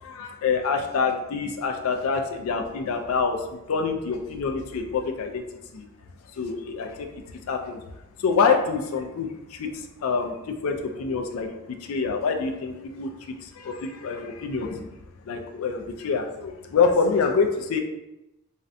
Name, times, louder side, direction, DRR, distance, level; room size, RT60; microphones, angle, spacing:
voice 1, 0.0-3.4 3.7-5.4 5.7-5.8 6.4-7.1 7.5-7.8 8.2-14.9 15.3-17.8, left 5 dB, 70° left, 5 dB, 0.3 m, -26 dB
2.5 x 2.1 x 2.5 m, 0.94 s
head